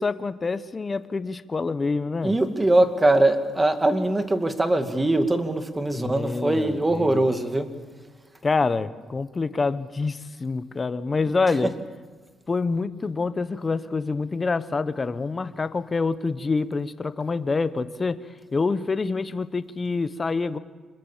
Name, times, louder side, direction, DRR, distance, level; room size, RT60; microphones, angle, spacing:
voice 1, 0.0-2.4 5.9-7.3 8.4-11.8 12.5-18.2 18.5-20.6, left 4 dB, 30° left, 13 dB, 1.0 m, -26 dB
voice 2, 2.2-7.7 11.6-11.7, right 1 dB, 15° right, 8 dB, 2.2 m, -22 dB
27.0 x 22.0 x 7.4 m, 1.4 s
cardioid pair, 90°, 0 cm